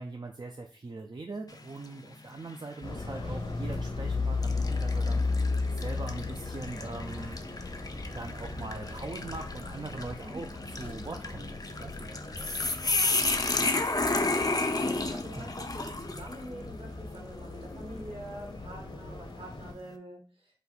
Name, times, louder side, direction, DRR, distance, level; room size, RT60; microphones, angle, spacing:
voice 1, 0.0-7.4 8.1-12.3, right 3 dB, 50° right, 3 dB, 0.4 m, -41 dB
sound 1, 1.5-2.0 2.5-2.6 3.6-3.8 4.4-16.4, left 2 dB, 40° left, 0.5 m, -32 dB
sound 2, 2.8-19.7, left 3 dB, 60° left, 0.9 m, -36 dB
sound 3, 3.2-3.6 3.9-4.2 4.7-5.0 5.5-5.7 6.2-6.6 7.0-7.3 7.7-8.0 8.5-8.7 9.2-9.7 10.0-10.3 10.8-10.9 11.5-11.7 12.3-12.7 13.0-13.3 13.8-14.0 14.6-14.7 15.3-15.7 16.1-16.3, right 1 dB, 85° right, 2.3 m, -51 dB
voice 2, 12.4-12.7 13.6-20.2, right 1 dB, 65° right, 0 dB, 1.5 m, -45 dB
4.3 x 2.6 x 4.0 m, 0.40 s
wide cardioid pair, 55°, 10 cm